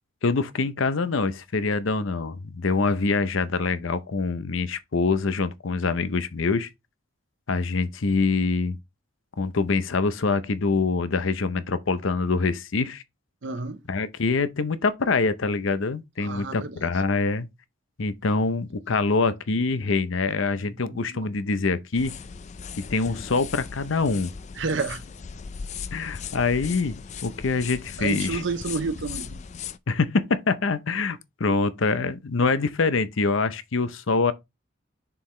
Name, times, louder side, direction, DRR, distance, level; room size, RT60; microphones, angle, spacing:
voice 1, 0.2-6.7 7.5-8.8 9.4-13.0 13.9-17.5 18.0-22.1 22.8-24.3 25.9-27.0 27.2-28.4 29.9-34.3, left 4 dB, 70° left, 0.6 m, -25 dB
voice 2, 13.4-13.8 16.2-16.9 20.8-21.2 24.6-25.0 28.0-29.4, right 4 dB, 60° right, 0.7 m, -30 dB
sound 1, 21.9-29.8, left 6 dB, 35° left, 0.4 m, -38 dB
6.9 x 4.7 x 3.1 m
head